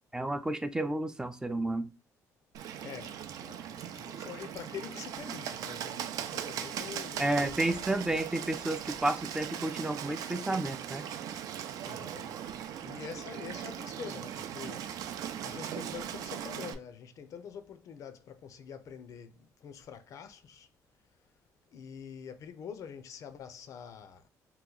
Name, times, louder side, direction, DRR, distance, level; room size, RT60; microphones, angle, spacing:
voice 1, 0.1-1.9 7.2-11.1, right 1 dB, 10° right, 0.3 m, -31 dB
Bird, 2.5-16.7, right 9 dB, 70° right, 0.4 m, -39 dB
voice 2, 2.8-7.3 11.9-12.5 12.8-14.9 15.4-20.7 21.7-24.3, left 7 dB, 60° left, 0.5 m, -45 dB
2.9 x 2.2 x 3.7 m
cardioid pair, 110°, 6 cm